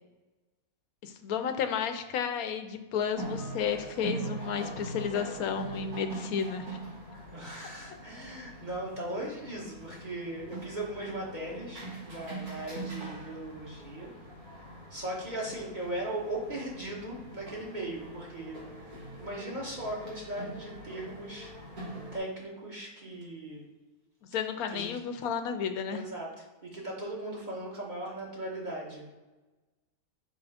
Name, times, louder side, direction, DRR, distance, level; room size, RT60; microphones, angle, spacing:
voice 1, 1.0-6.8 24.3-26.0, left 7 dB, 85° left, 8 dB, 1.1 m, -32 dB
sound 1, 3.1-22.2, right 2 dB, 75° right, 2.1 m, -42 dB
voice 2, 7.3-14.1 14.9-21.6 21.8-23.6 24.7-24.9 25.9-26.3 26.6-29.0, right 1 dB, 35° right, -3 dB, 1.4 m, -38 dB
5.3 x 3.7 x 4.9 m, 1.2 s
omnidirectional pair, 1.5 m